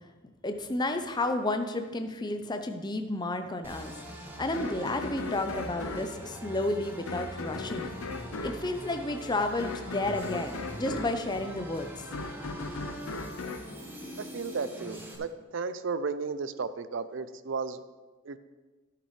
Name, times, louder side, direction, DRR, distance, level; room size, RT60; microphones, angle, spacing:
voice 1, 0.4-3.9 4.4-7.9 8.4-12.1, left 2 dB, 20° left, 6 dB, 0.5 m, -31 dB
sound 1, 3.6-15.2, equal, 10° right, 1.1 m, -43 dB
sound 2, 4.5-14.8, left 3 dB, 80° left, 0.7 m, -39 dB
voice 2, 14.2-17.8 18.2-18.4, right 4 dB, 60° right, 12 dB, 0.5 m, -34 dB
11.5 x 9.7 x 3.2 m, 1.3 s
head